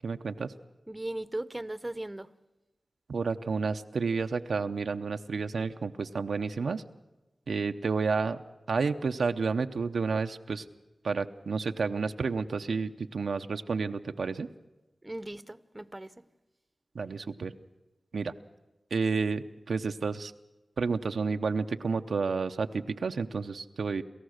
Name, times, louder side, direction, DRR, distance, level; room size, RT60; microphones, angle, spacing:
voice 1, 0.0-0.5 3.1-6.8 7.5-8.4 8.7-10.6 11.0-14.5 16.9-17.5 18.1-18.3 18.9-20.3 20.8-24.0, right 4 dB, 90° right, 0.7 m, -30 dB
voice 2, 0.9-2.3 15.0-16.1, right 1 dB, 20° right, 0.8 m, -37 dB
28.0 x 14.0 x 6.5 m
cardioid pair, 50°, 0 cm